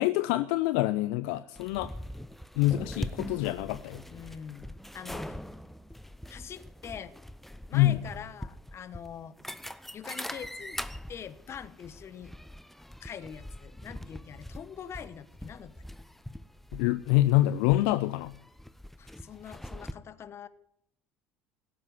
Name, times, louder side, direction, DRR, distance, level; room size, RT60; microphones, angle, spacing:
voice 1, 0.0-1.9 2.6-4.0 7.7-8.0 16.7-18.4, left 16 dB, 65° left, 13 dB, 0.5 m, -26 dB
sound 1, 1.6-19.9, equal, 5° left, 0.8 m, -43 dB
voice 2, 4.1-5.4 6.3-7.1 7.7-9.4 9.9-12.4 13.0-15.7 19.0-20.5, left 8 dB, 40° left, 14 dB, 1.2 m, -44 dB
17.0 x 8.5 x 9.5 m, 0.73 s
hypercardioid pair, 60°, 7 cm